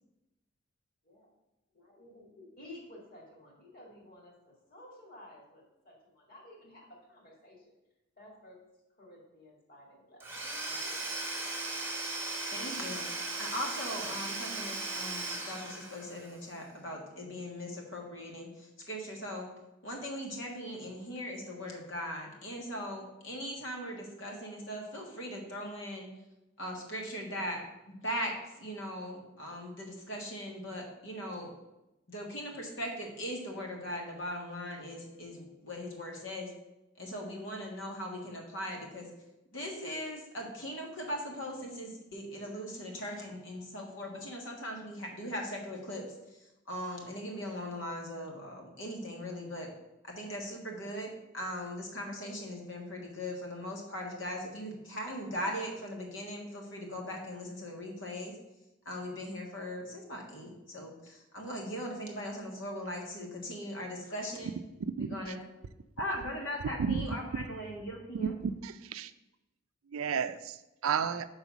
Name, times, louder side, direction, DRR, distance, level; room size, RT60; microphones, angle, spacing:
voice 1, 1.7-7.6 8.2-8.6 9.0-10.2 10.7-11.5, left 1 dB, 45° left, -2 dB, 2.1 m, -53 dB
Domestic sounds home sounds / Tools, 10.2-16.3, right 2 dB, 10° right, 1.2 m, -37 dB
voice 2, 12.5-19.5 19.8-26.1 26.6-31.5 32.1-36.5 37.0-39.1 39.5-46.0 46.3-49.7 50.0-58.3 58.8-64.5 65.0-65.4 66.0-68.4, equal, 65° left, 0 dB, 1.5 m, -39 dB
voice 3, 68.6-69.1 69.9-71.3, right 6 dB, 80° right, 12 dB, 0.4 m, -32 dB
5.4 x 4.0 x 6.0 m, 0.96 s
head